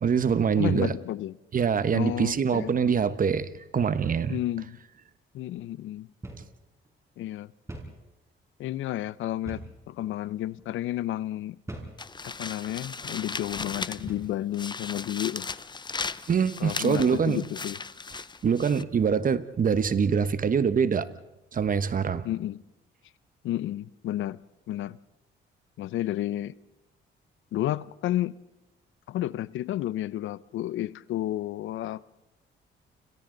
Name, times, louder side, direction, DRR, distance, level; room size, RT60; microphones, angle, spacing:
voice 1, 0.0-0.9 1.5-4.4 16.3-17.4 18.4-21.1 21.5-22.3, right 6 dB, 45° right, 1.2 m, -24 dB
voice 2, 0.6-1.3 1.9-2.7 4.3-4.8 5.3-6.1 7.2-7.5 8.6-11.6 12.2-15.5 16.6-17.8 22.2-22.6 23.4-24.4 24.7-25.0 25.8-26.5 27.5-28.4 29.1-32.0, left 13 dB, 80° left, 0.7 m, -31 dB
sound 1, 6.2-6.5 6.8-6.9 7.7-8.0 9.5-9.8 10.5-10.7 11.7-12.0 12.8-13.0 14.0-14.4, right 1 dB, 15° right, 6.4 m, -41 dB
sound 2, 12.0-14.2 14.5-18.8, left 4 dB, 20° left, 0.7 m, -37 dB
30.0 x 27.0 x 4.0 m
cardioid pair, 90°, 20 cm